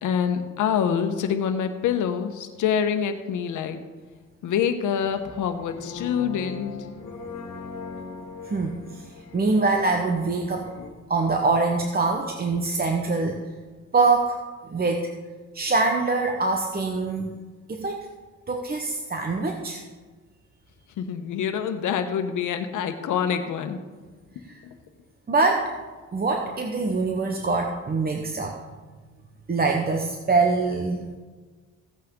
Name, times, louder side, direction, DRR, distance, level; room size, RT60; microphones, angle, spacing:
voice 1, 0.0-3.8 4.4-6.7 21.0-23.8, left 8 dB, 80° left, 7 dB, 1.2 m, -26 dB
sound 1, 5.0-10.9, left 4 dB, 55° left, 2.0 m, -40 dB
voice 2, 8.4-9.0 9.3-10.8 11.1-13.4 13.9-14.4 14.7-15.0 15.5-17.4 17.7-18.1 18.5-19.8 25.3-25.7 26.1-28.6 29.5-31.1, right 3 dB, 30° right, 3 dB, 1.1 m, -24 dB
16.0 x 8.7 x 3.8 m, 1.4 s
cardioid pair, 90°, 30 cm